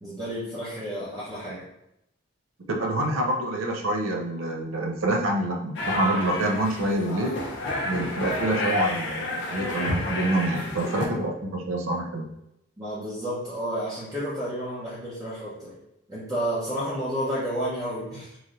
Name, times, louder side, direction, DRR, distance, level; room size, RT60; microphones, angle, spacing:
voice 1, 0.0-1.6 12.8-15.7 16.1-18.4, equal, 20° right, -9 dB, 0.6 m, -31 dB
voice 2, 2.7-7.4 7.8-12.3, right 1 dB, 75° right, 1 dB, 0.5 m, -27 dB
sound 1, 5.7-11.0, left 1 dB, 60° left, 0.5 m, -30 dB
3.1 x 2.6 x 2.4 m, 0.83 s
head